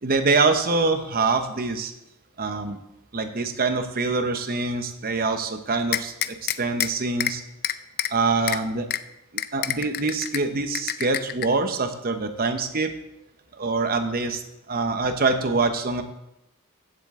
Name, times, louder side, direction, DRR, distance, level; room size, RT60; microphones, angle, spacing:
voice 1, 0.0-1.9 2.4-2.8 3.1-7.4 8.1-8.9 9.3-12.9 13.6-14.4 14.7-16.0, right 3 dB, 40° right, 7 dB, 0.9 m, -24 dB
sound 1, 5.9-6.9 7.2-7.3 7.6-8.1 8.5-8.6 8.9-9.0 9.4-10.4 10.7-11.5, left 11 dB, 45° left, 0.4 m, -26 dB
15.5 x 7.4 x 3.7 m, 0.88 s
head